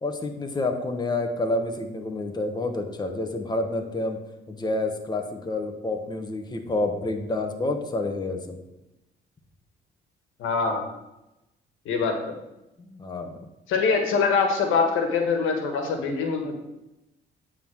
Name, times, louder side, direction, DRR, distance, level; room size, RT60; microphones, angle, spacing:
voice 1, 0.0-4.2 4.5-8.6 12.8-13.4, left 2 dB, 20° left, 4 dB, 1.1 m, -29 dB
voice 2, 10.4-10.9 11.8-12.3 13.7-16.5, left 5 dB, 85° left, 4 dB, 1.4 m, -24 dB
9.4 x 3.8 x 6.2 m, 0.92 s
cardioid pair, 90°, 20 cm